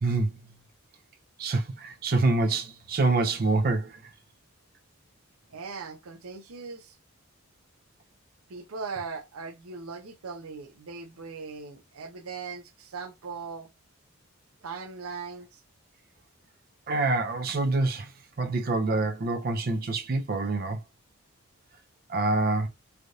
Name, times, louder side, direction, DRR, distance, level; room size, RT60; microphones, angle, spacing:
voice 1, 0.0-0.4 1.4-4.0 16.9-18.1 18.4-20.8 22.1-22.7, right 3 dB, 45° right, 0.5 m, -26 dB
voice 2, 5.5-7.0 8.5-13.7 14.6-15.6, right 4 dB, 85° right, 0.6 m, -39 dB
3.3 x 2.4 x 2.7 m
head